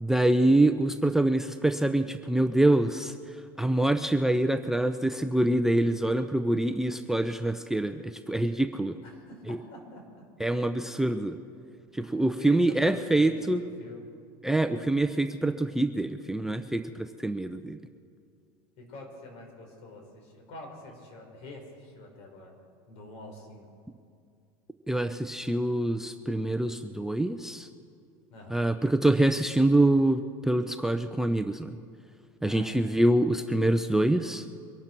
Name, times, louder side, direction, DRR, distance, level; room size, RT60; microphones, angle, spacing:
voice 1, 0.0-3.2 3.6-9.0 9.5-9.6 10.4-11.3 11.9-13.6 14.4-17.8 24.9-27.7 28.5-31.8 32.4-34.4, right 1 dB, 5° right, 10 dB, 0.5 m, -25 dB
voice 2, 9.0-10.3 10.8-11.1 11.9-14.1 18.8-23.7 28.3-28.6 32.4-33.0, left 1 dB, 60° left, 2 dB, 4.5 m, -46 dB
23.5 x 11.5 x 4.6 m, 2.3 s
supercardioid pair, 100°, 12 cm